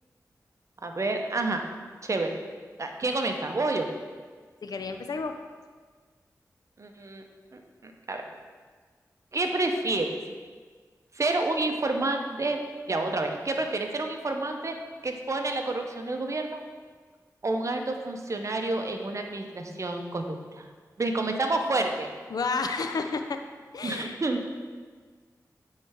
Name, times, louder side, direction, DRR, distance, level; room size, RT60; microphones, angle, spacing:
voice 1, 0.8-1.6 2.0-2.4 2.8-3.9 6.8-7.2 7.5-8.2 9.3-10.2 11.1-14.8 15.0-16.6 17.4-20.7 21.0-22.1 23.8-24.5, right 2 dB, 50° right, 4 dB, 0.7 m, -29 dB
voice 2, 4.6-5.4 22.3-23.4 23.7-24.2, left 4 dB, 70° left, 6 dB, 0.4 m, -31 dB
8.8 x 3.2 x 3.5 m, 1.5 s
cardioid pair, 45°, 7 cm